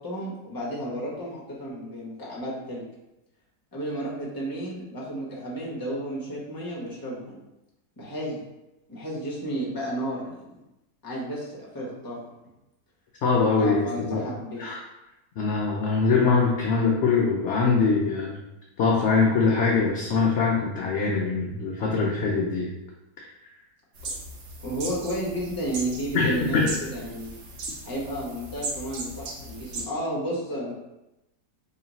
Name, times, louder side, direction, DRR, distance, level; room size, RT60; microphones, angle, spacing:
voice 1, 0.0-2.8 3.7-7.4 8.0-8.4 8.9-10.5 11.0-12.2 13.6-14.6 24.6-27.3 27.8-30.7, right 1 dB, 20° left, -5 dB, 0.7 m, -32 dB
voice 2, 13.2-14.2 14.6-14.8 15.4-18.4 18.8-22.7 26.1-26.7, left 4 dB, 70° left, -2 dB, 0.6 m, -23 dB
sound 1, 23.9-29.8, right 2 dB, 90° right, 1.4 m, -37 dB
3.1 x 3.0 x 3.9 m, 0.94 s
omnidirectional pair, 1.7 m